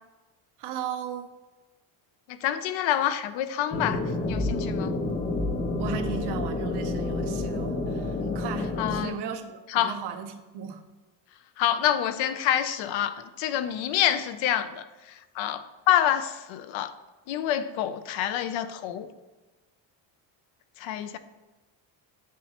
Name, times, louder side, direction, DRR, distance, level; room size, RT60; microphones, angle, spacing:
voice 1, 0.6-1.3 5.8-10.8, right 7 dB, 55° right, 6 dB, 0.8 m, -36 dB
voice 2, 2.3-4.0 4.3-4.9 8.8-9.2 9.7-9.9 11.6-16.9 17.3-19.1 20.8-21.2, left 11 dB, 75° left, 12 dB, 0.7 m, -27 dB
sound 1, 3.7-9.0, left 2 dB, 20° left, 0.5 m, -29 dB
8.4 x 7.4 x 2.9 m, 1.2 s
cardioid pair, 180°, 47 cm